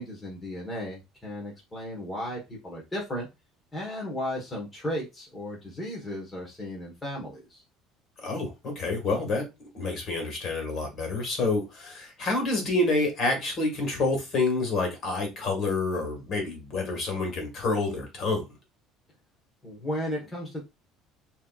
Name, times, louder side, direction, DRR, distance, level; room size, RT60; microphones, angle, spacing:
voice 1, 0.0-3.3 3.7-7.6 19.6-20.6, equal, 10° left, 1.3 m, -35 dB
voice 2, 8.2-9.5 9.7-18.5, left 3 dB, 40° left, 1.8 m, -28 dB
6.5 x 3.0 x 2.4 m
cardioid pair, 160°, 0 cm